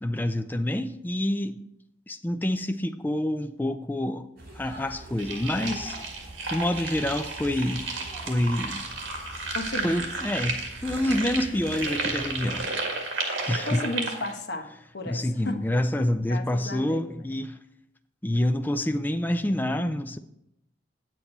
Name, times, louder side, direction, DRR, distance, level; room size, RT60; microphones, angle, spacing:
voice 1, 0.0-1.6 2.1-4.3 4.6-6.0 6.5-7.9 8.3-8.8 9.8-12.7 13.5-13.8 15.1-17.6 18.2-20.2, left 1 dB, 10° left, 0.4 m, -27 dB
sound 1, 4.4-12.7, right 1 dB, 50° right, 3.4 m, -44 dB
sound 2, 5.2-14.3, right 3 dB, 70° right, 1.9 m, -33 dB
voice 2, 9.5-10.1 13.6-15.6 16.3-17.0, left 2 dB, 55° left, 1.0 m, -34 dB
9.2 x 7.9 x 4.3 m
head